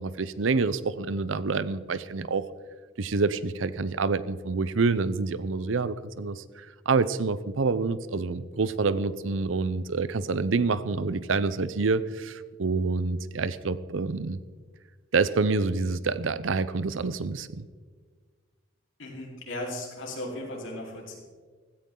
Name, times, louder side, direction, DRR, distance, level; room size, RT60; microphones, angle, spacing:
voice 1, 0.0-2.4 3.0-14.4 15.1-17.6, right 4 dB, 75° right, 16 dB, 0.6 m, -27 dB
voice 2, 19.0-21.2, left 1 dB, 75° left, -2 dB, 4.0 m, -36 dB
16.0 x 14.5 x 3.8 m, 1.5 s
head